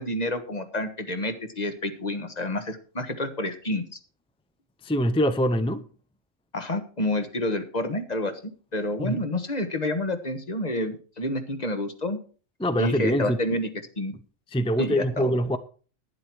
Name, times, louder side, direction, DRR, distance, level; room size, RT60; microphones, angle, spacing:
voice 1, 0.0-3.8 6.5-8.4 8.7-12.2 12.8-14.1 14.8-15.4, left 1 dB, 35° left, 1.4 m, -29 dB
voice 2, 4.8-5.8 9.0-9.2 12.6-13.4 14.5-15.6, equal, 10° left, 0.3 m, -24 dB
11.5 x 9.9 x 4.6 m
omnidirectional pair, 1.3 m